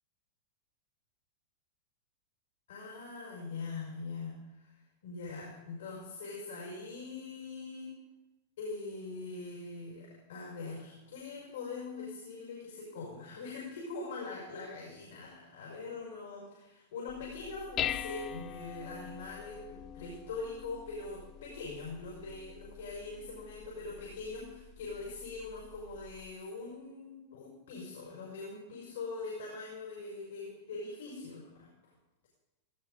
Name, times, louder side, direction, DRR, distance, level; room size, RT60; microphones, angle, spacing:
voice 1, 2.7-7.9 8.6-31.9, left 3 dB, 80° left, -3 dB, 6.0 m, -42 dB
Dishes pots and pans, 17.1-26.3, left 10 dB, 35° left, 0.6 m, -43 dB
18.5 x 15.0 x 4.1 m, 1.1 s
hypercardioid pair, 110°, 0 cm